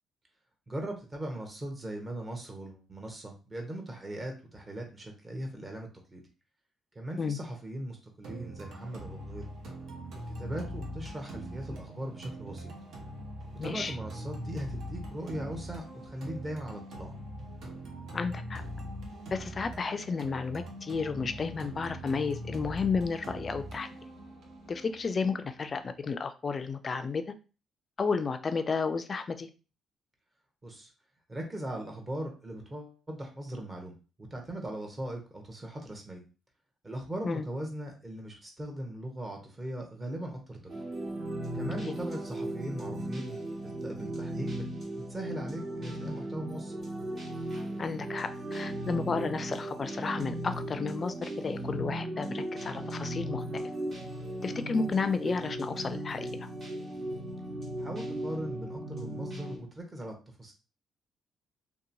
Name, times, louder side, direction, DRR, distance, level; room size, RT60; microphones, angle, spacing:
voice 1, 0.7-6.2 6.9-9.4 10.4-12.7 13.6-17.1 30.6-30.9 31.3-36.2 36.8-40.7 41.5-44.7 45.1-46.7 57.8-60.5, right 1 dB, 25° right, 2 dB, 0.8 m, -39 dB
sound 1, 8.2-26.2, equal, 70° right, 0.7 m, -42 dB
voice 2, 13.6-13.9 18.1-18.6 19.3-23.9 24.7-27.3 28.0-29.5 37.2-37.5 41.8-41.9 47.8-53.6 54.4-56.3, left 5 dB, 40° left, 10 dB, 0.3 m, -32 dB
sound 2, 40.7-59.6, right 1 dB, 50° right, 1.2 m, -37 dB
2.8 x 2.2 x 2.6 m, 0.33 s
cardioid pair, 90°, 0 cm